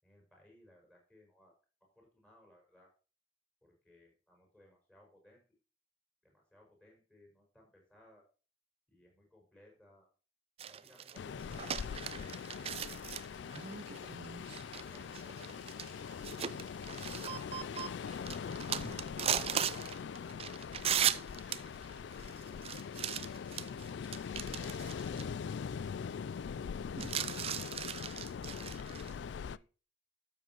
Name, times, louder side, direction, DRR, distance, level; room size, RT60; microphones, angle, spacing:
voice 1, 0.0-1.5 2.0-2.9 3.6-5.4 6.2-8.3 8.9-10.1 10.7-12.3 13.6-13.8 23.5-23.9, left 1 dB, 5° left, 0 dB, 5.4 m, -64 dB
sound 1, 10.6-25.2 25.5-25.6 27.0-29.1, right 9 dB, 30° right, 0.4 m, -38 dB
Ocean, 11.1-29.6, left 6 dB, 60° left, 0.3 m, -42 dB
12.5 x 7.7 x 3.0 m, 0.35 s
head